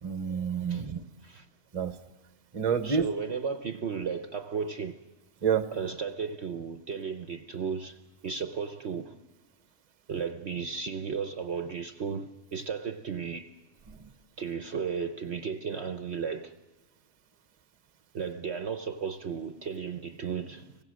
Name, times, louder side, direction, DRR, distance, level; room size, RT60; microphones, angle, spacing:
voice 1, 0.0-1.0 1.7-1.9 2.5-3.1 5.4-5.7, right 6 dB, 30° right, 0.9 m, -28 dB
voice 2, 2.8-5.0 5.7-8.0 8.2-9.2 10.1-13.5 14.4-16.5 18.1-20.7, right 6 dB, 50° right, 1.0 m, -34 dB
26.0 x 17.5 x 6.3 m
omnidirectional pair, 1.6 m